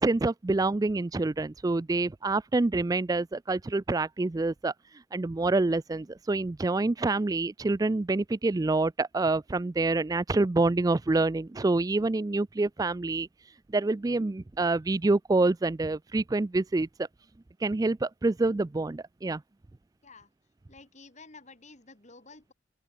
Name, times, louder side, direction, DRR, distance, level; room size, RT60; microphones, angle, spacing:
voice 1, 0.0-4.7 5.1-13.3 13.7-16.9 17.6-19.4, right 2 dB, 20° right, 0.3 m, -27 dB
voice 2, 20.7-22.5, left 3 dB, 40° left, 3.8 m, -51 dB
open air
head